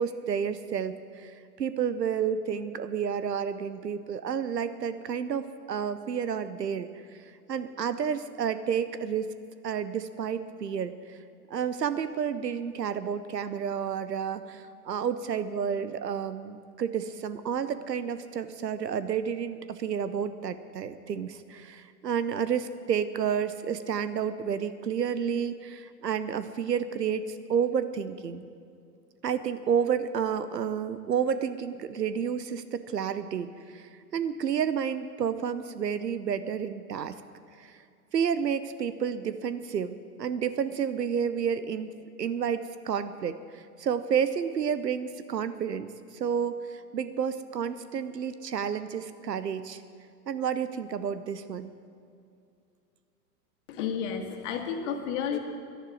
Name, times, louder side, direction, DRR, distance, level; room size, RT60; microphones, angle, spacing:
voice 1, 0.0-6.9 7.2-9.3 9.6-11.2 11.5-28.4 29.2-37.2 37.6-37.8 38.1-41.9 42.2-49.8 50.3-51.7, right 7 dB, 90° right, 13 dB, 0.8 m, -30 dB
voice 2, 53.7-55.4, left 7 dB, 50° left, 4 dB, 2.0 m, -31 dB
11.5 x 11.0 x 9.0 m, 2.5 s
hypercardioid pair, 115°, 47 cm